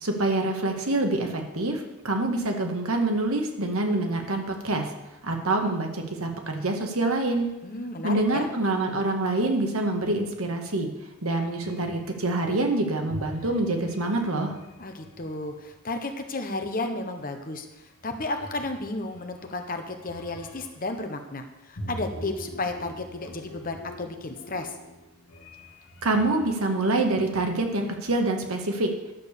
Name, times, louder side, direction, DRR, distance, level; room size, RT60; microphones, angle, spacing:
voice 1, 0.0-4.9 5.2-7.5 8.0-10.9 11.2-14.6 26.0-28.9, right 2 dB, 75° right, 3 dB, 1.8 m, -26 dB
voice 2, 7.6-8.5 14.8-17.6 18.0-24.7, left 2 dB, 40° left, 6 dB, 1.1 m, -33 dB
sound 1, 11.4-12.3 13.1-15.7 17.4-17.7 18.0-21.0 21.7-26.5, equal, 80° left, 1.8 m, -44 dB
10.5 x 7.0 x 6.8 m, 0.97 s
head